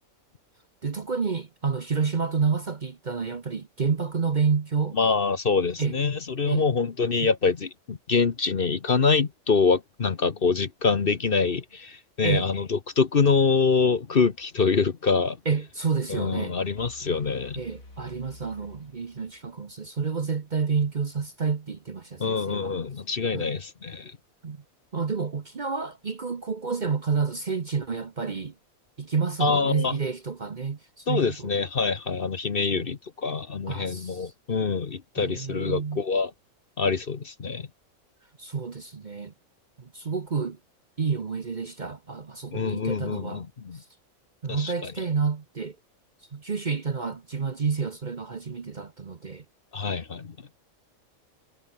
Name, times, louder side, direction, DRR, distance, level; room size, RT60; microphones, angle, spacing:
voice 1, 0.8-5.0 5.8-6.0 6.4-6.6 7.2-7.3 12.2-12.5 15.4-16.6 17.6-22.8 23.3-23.5 24.4-24.6 24.9-28.5 29.0-31.5 32.7-32.9 33.7-34.3 35.2-36.0 38.4-39.3 39.8-40.6 41.0-43.4 43.7-43.8 44.4-45.8 46.3-49.4, right 5 dB, 35° right, 1.0 m, -29 dB
voice 2, 4.9-15.4 16.1-17.6 22.2-24.1 29.4-29.9 31.1-36.3 36.8-37.7 42.5-43.8 44.5-44.9 49.7-50.4, left 5 dB, 45° left, 1.2 m, -25 dB
sound 1, 16.8-19.7, left 2 dB, 75° left, 5.6 m, -49 dB
omnidirectional pair, 1.5 m